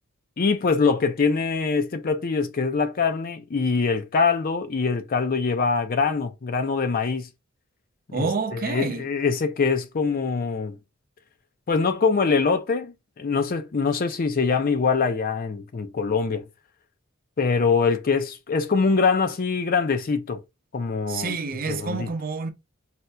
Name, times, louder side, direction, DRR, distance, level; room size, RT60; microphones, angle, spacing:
voice 1, 0.4-7.3 8.1-10.8 11.7-16.5 17.4-20.4 20.7-21.3 21.7-22.1, left 4 dB, 45° left, 0.5 m, -23 dB
voice 2, 8.1-9.1 21.1-22.5, right 4 dB, 45° right, 0.6 m, -28 dB
4.2 x 2.6 x 2.2 m
head